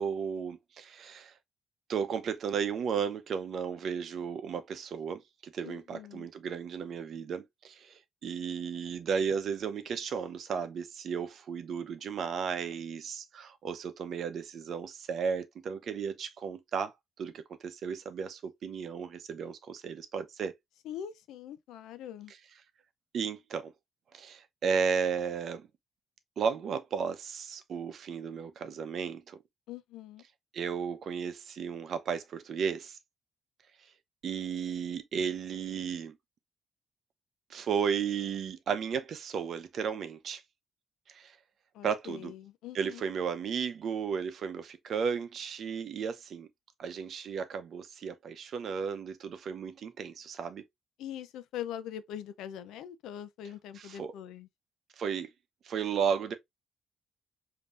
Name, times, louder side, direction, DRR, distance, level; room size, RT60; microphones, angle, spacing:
voice 1, 0.0-1.3 1.9-16.9 17.2-20.5 23.1-23.7 24.1-25.6 26.4-29.4 30.5-33.0 34.2-36.1 37.5-40.4 41.1-41.3 41.8-42.3 42.7-46.5 46.8-50.6 53.7-54.1 55.0-55.3 55.6-56.3, right 6 dB, 60° right, 0.8 m, -34 dB
voice 2, 5.6-6.3 20.8-22.3 29.7-30.2 41.7-43.0 51.0-54.5, left 10 dB, 90° left, 0.5 m, -42 dB
5.3 x 2.8 x 2.4 m
cardioid pair, 90°, 0 cm